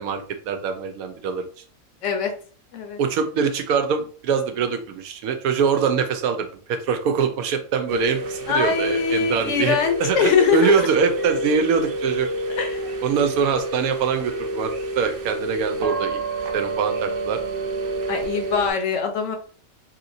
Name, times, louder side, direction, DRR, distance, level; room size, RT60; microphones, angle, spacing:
voice 1, 0.0-1.5 3.0-12.3 13.0-16.2 16.5-17.4, right 6 dB, 85° right, 7 dB, 1.0 m, -23 dB
sound 1, 7.9-18.7, right 2 dB, 70° right, 0.5 m, -29 dB
voice 2, 8.5-10.9 12.5-13.0 18.1-19.4, left 6 dB, 65° left, 5 dB, 0.9 m, -22 dB
3.0 x 2.8 x 2.6 m, 0.43 s
omnidirectional pair, 1.5 m